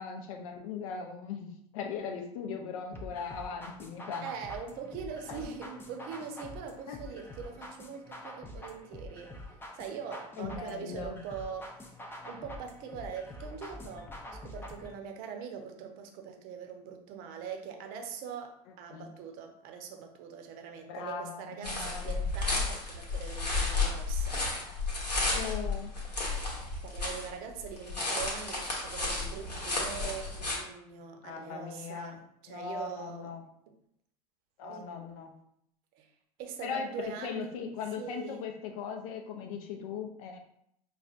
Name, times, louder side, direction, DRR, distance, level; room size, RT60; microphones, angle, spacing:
voice 1, 0.0-1.5 1.7-4.3 5.3-5.4 6.9-7.0 10.4-11.2 18.9-19.1 20.9-22.3 25.3-25.9 31.2-32.2 32.5-33.4 34.6-35.3 36.6-36.9 37.2-40.4, left 6 dB, 55° left, 3 dB, 0.6 m, -39 dB
sound 1, 2.9-14.9, left 1 dB, 10° left, 0.6 m, -46 dB
voice 2, 4.2-9.3 9.7-11.8 12.3-24.4 26.8-33.3 34.6-34.9 35.9-36.1 36.4-37.5 37.9-38.4, right 6 dB, 45° right, 4 dB, 0.7 m, -42 dB
sound 2, 21.6-27.3 27.6-30.6, left 3 dB, 85° left, 1.0 m, -32 dB
5.0 x 2.4 x 2.5 m, 0.73 s
figure-of-eight pair, 80°, 21 cm